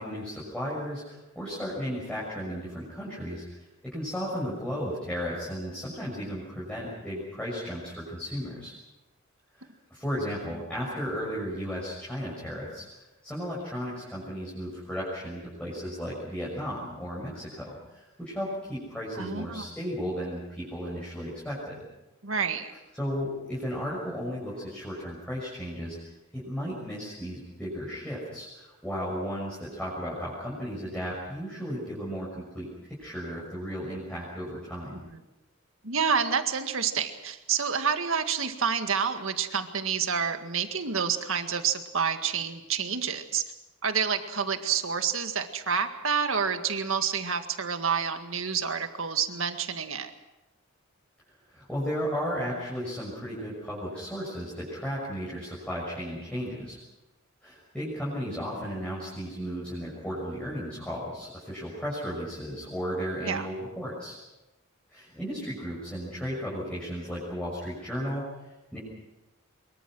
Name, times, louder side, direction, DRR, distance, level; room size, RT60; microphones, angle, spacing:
voice 1, 0.0-8.7 9.5-21.8 22.9-26.0 26.3-35.0 51.5-56.8 57.4-64.2 64.9-68.3 68.7-68.8, equal, 5° left, -7 dB, 6.5 m, -34 dB
voice 2, 19.2-19.7 22.2-22.7 34.9-35.0 35.8-43.4 43.8-50.1 63.2-63.5, right 6 dB, 70° right, 7 dB, 1.9 m, -28 dB
24.5 x 23.0 x 6.3 m, 1.0 s
head